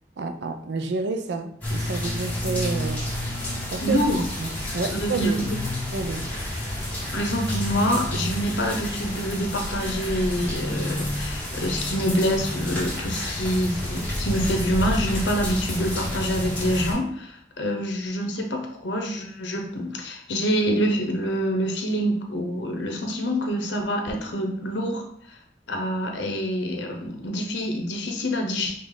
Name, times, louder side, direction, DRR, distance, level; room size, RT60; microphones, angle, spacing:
voice 1, 0.2-3.1 3.7-4.0 4.4-5.4 5.9-6.3, right 3 dB, 70° right, 7 dB, 0.5 m, -29 dB
sound 1, 1.6-16.9, left 1 dB, 10° left, 1.4 m, -30 dB
voice 2, 3.8-4.2 4.9-5.6 7.1-25.0 25.7-28.7, equal, 85° left, 3 dB, 0.9 m, -26 dB
5.1 x 2.5 x 3.7 m, 0.67 s
head